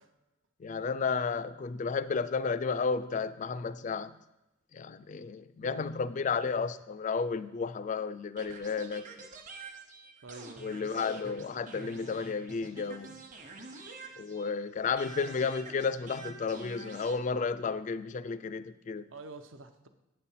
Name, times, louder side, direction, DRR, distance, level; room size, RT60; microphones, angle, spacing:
voice 1, 0.6-4.2 4.7-9.3 10.6-13.2 14.2-19.1, left 5 dB, 40° left, 14 dB, 0.3 m, -32 dB
voice 2, 5.6-6.0 10.2-10.7 12.8-13.2 19.1-19.9, right 3 dB, 75° right, 8 dB, 0.7 m, -48 dB
sound 1, 8.4-14.6 15.0-17.2, right 3 dB, 40° right, 1.0 m, -47 dB
9.0 x 4.2 x 7.3 m, 0.98 s
head